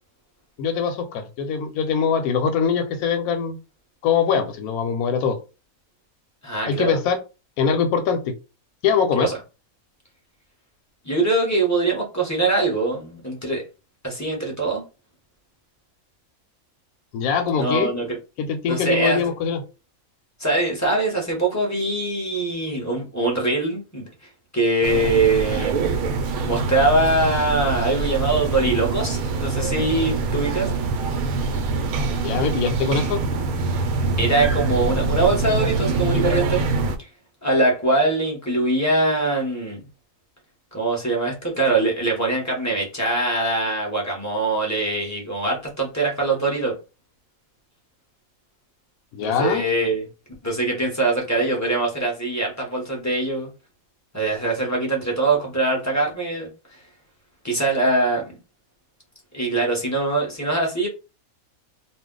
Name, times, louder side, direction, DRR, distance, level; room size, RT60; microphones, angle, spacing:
voice 1, 0.6-3.6 4.0-5.4 6.6-7.2 7.6-8.2 8.8-9.3 17.1-17.9 18.4-19.6 32.2-33.2 49.1-49.6, left 6 dB, 90° left, 5 dB, 1.1 m, -22 dB
voice 2, 6.4-7.0 9.1-9.4 11.0-13.6 14.0-14.8 17.6-18.2 18.7-19.2 20.4-24.1 24.5-25.9 26.4-30.7 34.2-36.6 37.0-37.1 37.4-39.9 40.7-46.7 49.2-50.0 50.4-53.5 54.1-56.5 57.4-58.3 59.3-60.9, right 2 dB, 15° left, -1 dB, 0.7 m, -22 dB
sound 1, 24.8-37.0, right 3 dB, 85° right, 1.1 m, -24 dB
2.5 x 2.2 x 3.6 m, 0.30 s
omnidirectional pair, 1.5 m